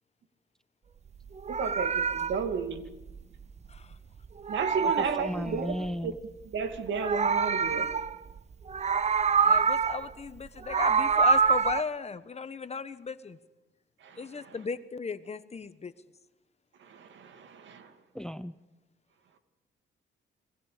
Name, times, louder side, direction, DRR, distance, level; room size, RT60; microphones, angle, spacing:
Meow, 1.3-4.0 4.2-5.9 6.7-8.4 8.7-10.1 10.5-11.8, right 6 dB, 35° right, 0.9 m, -27 dB
voice 1, 1.5-2.9 4.5-5.8 6.0-6.1 6.5-7.9 14.0-14.5 16.8-17.9, right 5 dB, 70° right, 2.5 m, -33 dB
voice 2, 5.2-6.2 18.1-18.5, equal, 5° left, 0.7 m, -35 dB
voice 3, 9.4-13.4 14.2-15.9, left 5 dB, 30° left, 1.3 m, -36 dB
29.5 x 22.0 x 5.2 m
cardioid pair, 90°, 20 cm